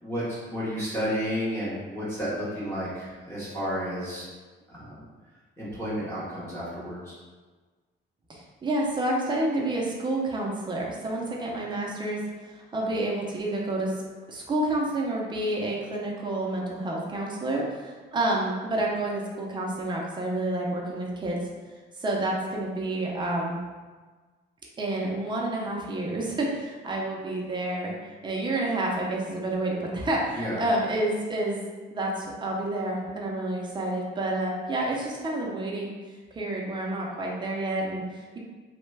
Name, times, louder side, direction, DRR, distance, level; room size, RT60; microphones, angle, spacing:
voice 1, 0.0-4.3 4.7-5.0 5.6-7.1 30.3-30.6, equal, 10° left, -9 dB, 0.8 m, -32 dB
voice 2, 8.3-12.2 12.5-14.0 14.3-21.4 22.0-23.6 24.8-31.6 31.9-35.9 36.3-38.4, right 1 dB, 25° right, -2 dB, 0.5 m, -29 dB
3.1 x 2.2 x 3.2 m, 1.4 s
cardioid pair, 165°, 20 cm